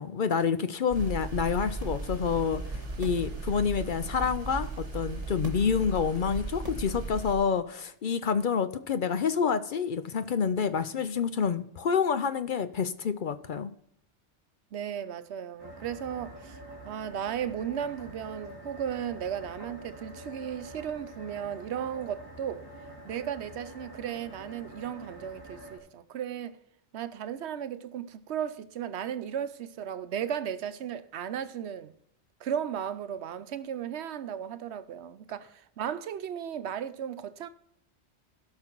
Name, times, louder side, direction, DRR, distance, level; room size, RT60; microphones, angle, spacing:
voice 1, 0.0-2.6 3.0-13.7, left 6 dB, 55° left, 0.6 m, -28 dB
sound 1, 0.9-7.3, right 3 dB, 35° right, 1.6 m, -36 dB
voice 2, 14.7-16.6 16.8-22.7 23.0-26.6 26.9-31.9 32.4-37.5, right 9 dB, 80° right, 0.9 m, -35 dB
sound 2, 15.6-25.8, right 1 dB, 20° left, 2.3 m, -46 dB
16.5 x 5.8 x 4.5 m
omnidirectional pair, 1.1 m